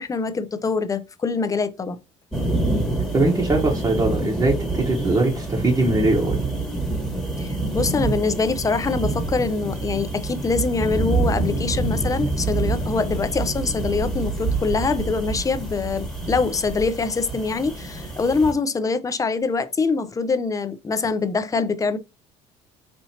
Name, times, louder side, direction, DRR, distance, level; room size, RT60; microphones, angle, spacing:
voice 1, 0.0-2.0 7.4-22.0, left 4 dB, 25° left, 0.5 m, -24 dB
sound 1, 2.3-18.5, right 2 dB, 5° left, 1.3 m, -26 dB
voice 2, 3.1-6.4, right 2 dB, 25° right, 1.0 m, -21 dB
4.3 x 2.8 x 2.8 m
supercardioid pair, 80°, 15 cm